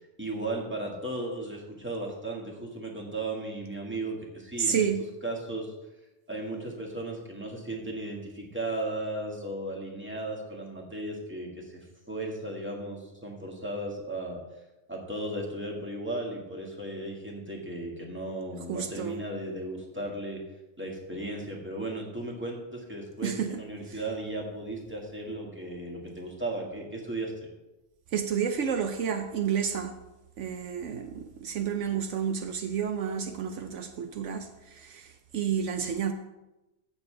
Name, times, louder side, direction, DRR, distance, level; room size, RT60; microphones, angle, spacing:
voice 1, 0.2-4.9 5.2-5.7 6.3-14.4 14.9-20.4 20.8-27.5, right 2 dB, 10° right, -1 dB, 1.9 m, -36 dB
voice 2, 4.6-5.1 18.7-19.2 23.2-23.6 23.9-24.0 28.1-30.0 30.4-36.1, right 7 dB, 75° right, 7 dB, 1.0 m, -30 dB
15.5 x 7.1 x 3.4 m, 1.0 s
omnidirectional pair, 1.3 m